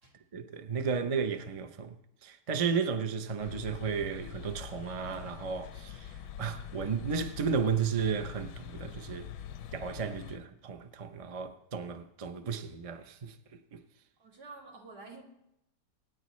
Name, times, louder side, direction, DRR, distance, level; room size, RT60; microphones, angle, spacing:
voice 1, 0.3-2.0 2.2-6.1 6.4-9.3 9.7-13.3 13.7-13.8, right 6 dB, 40° right, 0.5 m, -33 dB
sound 1, 3.4-10.4, left 9 dB, 85° left, 1.3 m, -45 dB
voice 2, 14.2-15.2, right 3 dB, 75° right, 3.0 m, -49 dB
25.0 x 9.8 x 3.2 m
omnidirectional pair, 1.7 m